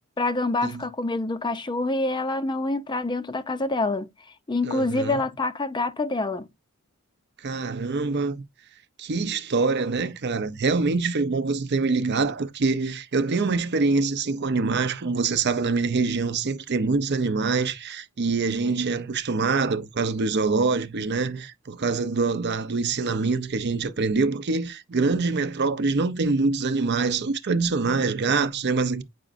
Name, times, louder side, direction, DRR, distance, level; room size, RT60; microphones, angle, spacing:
voice 1, 0.2-4.1 4.5-6.5, left 2 dB, 20° left, 0.5 m, -26 dB
voice 2, 4.6-5.2 7.4-8.4 9.0-29.0, right 4 dB, 50° right, 0.6 m, -25 dB
8.4 x 4.9 x 2.5 m
head